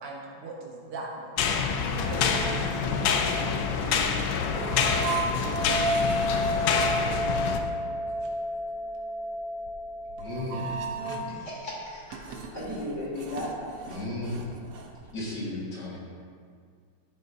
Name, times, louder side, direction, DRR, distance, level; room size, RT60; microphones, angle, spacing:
voice 1, 0.0-3.5 7.1-7.8 8.2-8.3, right 2 dB, 85° right, -2 dB, 2.3 m, -41 dB
sound 1, 1.4-7.6, left 6 dB, 70° left, 1.3 m, -27 dB
sound 2, 1.6-11.5 11.9-15.1, right 1 dB, 70° right, 0.8 m, -33 dB
sound 3, 2.2-7.3, left 1 dB, 30° right, 1.9 m, -41 dB
voice 2, 10.2-10.8 13.9-14.5 15.1-16.0, left 1 dB, 55° left, -5 dB, 2.3 m, -34 dB
voice 3, 11.3-14.0, left 1 dB, 35° left, -6 dB, 2.4 m, -36 dB
13.5 x 7.8 x 2.7 m, 2.1 s
omnidirectional pair, 2.4 m